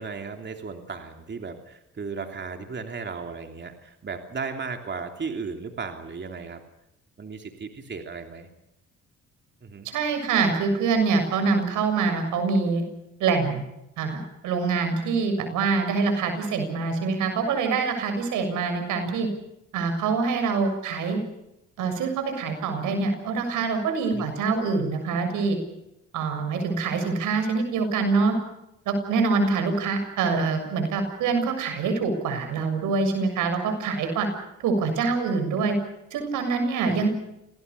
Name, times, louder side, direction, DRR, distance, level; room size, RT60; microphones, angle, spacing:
voice 1, 0.0-6.6 7.2-8.5 9.6-9.9 24.1-24.3 36.8-37.0, right 5 dB, 35° right, 4 dB, 3.1 m, -35 dB
voice 2, 9.9-12.8 13.2-13.7 14.0-19.3 19.7-21.2 21.8-25.6 26.1-28.4 28.9-34.3 34.6-35.8 36.1-37.1, right 4 dB, 90° right, 6 dB, 7.1 m, -25 dB
27.5 x 19.0 x 6.9 m, 0.86 s
cardioid pair, 90°, 30 cm